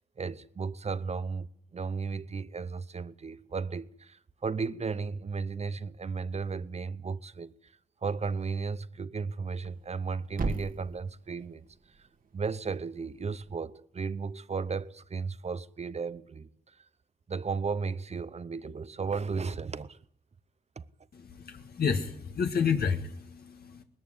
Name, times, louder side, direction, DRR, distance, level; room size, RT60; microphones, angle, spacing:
voice 1, 0.2-1.5 1.7-7.7 8.0-11.7 12.0-12.1 12.3-16.5 17.3-20.0 20.8-20.9, right 5 dB, 40° right, 0.8 m, -34 dB
Thump thud, 9.5-13.6, right 3 dB, 55° right, 1.8 m, -40 dB
voice 2, 21.1-23.8, left 6 dB, 65° left, 1.7 m, -30 dB
20.0 x 14.0 x 9.6 m
wide cardioid pair, 110°, 17 cm